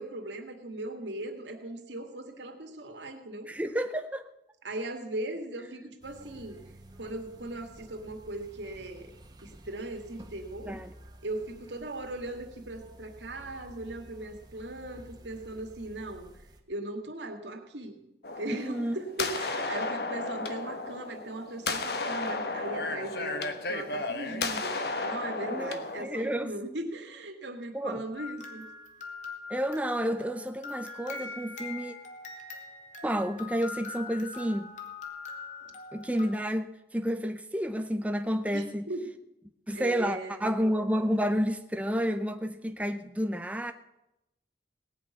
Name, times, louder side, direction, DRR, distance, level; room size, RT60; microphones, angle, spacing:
voice 1, 0.0-3.5 4.6-6.6 7.0-9.1 9.4-10.8 11.2-16.3 16.7-18.0 18.4-28.7 35.6-35.7 38.5-39.0 39.7-40.4, right 2 dB, 85° right, 2.2 m, -39 dB
voice 2, 3.5-4.3 10.7-10.9 18.5-19.0 25.5-26.6 27.7-28.0 29.5-32.0 33.0-34.7 35.9-38.9 39.7-43.7, equal, 10° right, 0.6 m, -30 dB
sound 1, 6.0-16.6, right 1 dB, 25° right, 1.5 m, -52 dB
sound 2, 18.2-26.1, left 3 dB, 60° left, 1.3 m, -33 dB
sound 3, 28.1-36.4, left 4 dB, 45° left, 2.1 m, -43 dB
18.5 x 6.5 x 9.6 m
head